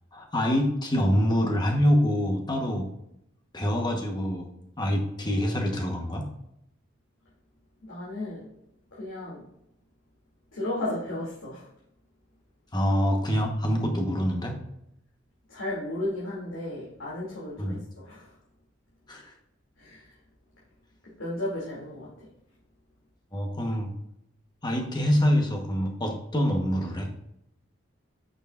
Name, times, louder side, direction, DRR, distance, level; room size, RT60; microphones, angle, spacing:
voice 1, 0.1-2.9 3.5-4.5 4.8-6.3 12.7-14.6 17.6-17.8 19.1-19.3 23.3-23.9 24.6-27.1, equal, 20° left, 3 dB, 1.1 m, -25 dB
voice 2, 7.8-8.5 8.9-9.4 10.5-11.7 15.5-18.4 19.8-20.2 21.0-22.3, left 1 dB, 90° left, -8 dB, 2.6 m, -34 dB
9.0 x 6.7 x 2.5 m, 0.78 s
head